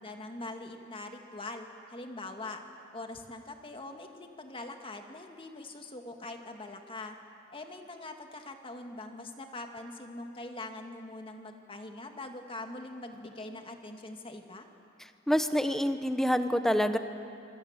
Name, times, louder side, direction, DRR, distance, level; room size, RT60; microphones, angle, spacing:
voice 1, 0.0-2.6 2.9-7.1 7.5-14.7, left 2 dB, 25° left, 4 dB, 2.1 m, -43 dB
voice 2, 15.3-17.0, equal, ahead, 9 dB, 1.1 m, -26 dB
26.5 x 22.5 x 8.9 m, 2.6 s
head